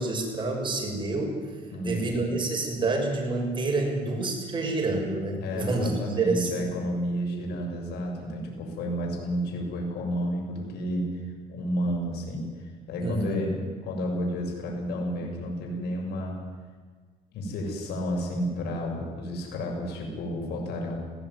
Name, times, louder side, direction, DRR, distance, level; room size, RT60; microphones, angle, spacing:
voice 1, 0.0-1.4 1.8-6.7 13.0-13.4, right 2 dB, 30° right, 1 dB, 6.5 m, -28 dB
voice 2, 1.7-2.1 5.4-11.1 11.5-13.6 13.8-16.4 17.3-21.0, equal, 75° left, 0 dB, 6.9 m, -31 dB
20.0 x 16.5 x 9.6 m, 1.5 s
cardioid pair, 110°, 17 cm